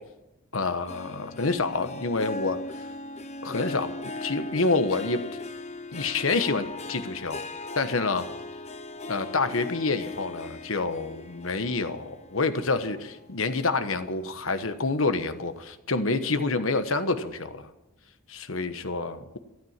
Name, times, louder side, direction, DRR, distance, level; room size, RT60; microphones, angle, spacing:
voice 1, 0.5-2.6 3.4-3.9 4.2-5.2 5.9-7.4 7.8-8.3 9.1-17.7 18.3-19.4, left 3 dB, 75° left, 10 dB, 1.2 m, -27 dB
Harp, 0.9-13.6 14.0-14.4 14.9-15.0, left 2 dB, 30° left, 0.9 m, -39 dB
13.0 x 12.5 x 7.4 m, 0.96 s
head